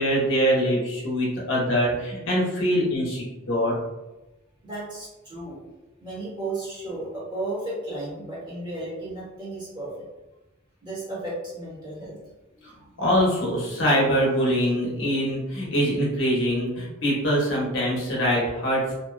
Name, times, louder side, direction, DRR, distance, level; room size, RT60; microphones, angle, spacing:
voice 1, 0.0-3.7 13.0-18.9, equal, 65° left, -4 dB, 0.8 m, -23 dB
voice 2, 4.6-5.6 6.0-10.1 10.8-12.2 15.1-15.2, right 2 dB, 20° right, -8 dB, 1.0 m, -34 dB
2.5 x 2.3 x 2.2 m, 1.0 s
head